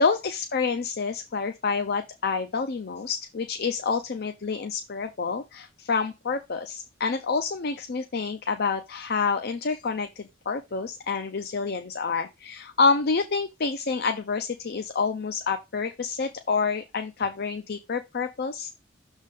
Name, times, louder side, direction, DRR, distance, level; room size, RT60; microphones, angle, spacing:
voice 1, 0.0-18.7, left 4 dB, 55° left, 0.6 m, -28 dB
6.5 x 3.6 x 5.2 m
head